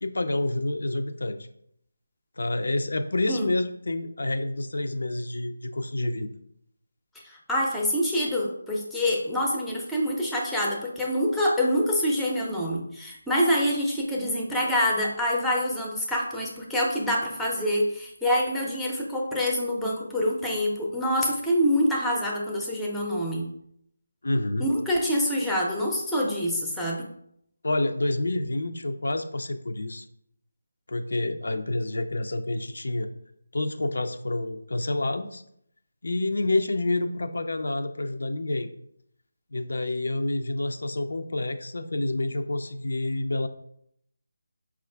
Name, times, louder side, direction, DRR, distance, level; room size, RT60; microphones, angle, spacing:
voice 1, 0.0-1.4 2.4-6.3 24.2-24.7 27.6-30.1 30.9-33.1 33.5-35.4 36.0-38.7 39.5-43.5, left 2 dB, 70° left, 8 dB, 0.3 m, -28 dB
voice 2, 7.2-23.4 24.6-27.1, equal, 5° left, -2 dB, 0.5 m, -26 dB
4.8 x 2.3 x 3.3 m, 0.72 s
figure-of-eight pair, 160°, 0 cm